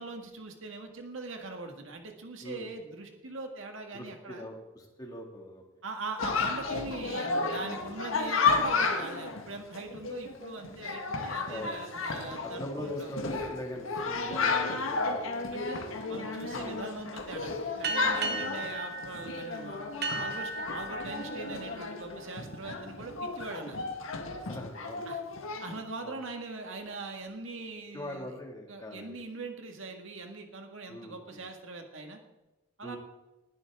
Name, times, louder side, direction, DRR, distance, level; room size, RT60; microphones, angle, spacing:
voice 1, 0.0-4.5 5.8-13.1 15.5-15.8 16.1-19.8 20.1-23.8 25.1-25.2 25.6-28.3 28.7-32.2 32.8-33.0, right 3 dB, 80° right, 4 dB, 1.9 m, -41 dB
voice 2, 3.9-5.6 11.5-11.8 12.4-15.7 16.5-16.8 18.3-18.5 24.5-25.0 26.0-26.2 27.9-29.2 30.9-31.4 32.8-33.0, left 1 dB, 20° left, 1 dB, 2.2 m, -42 dB
Chatter, 6.2-25.8, left 4 dB, 90° left, 1.6 m, -33 dB
sound 1, 17.8-22.9, right 2 dB, 50° right, 1.2 m, -37 dB
20.5 x 11.0 x 3.7 m, 1.1 s
head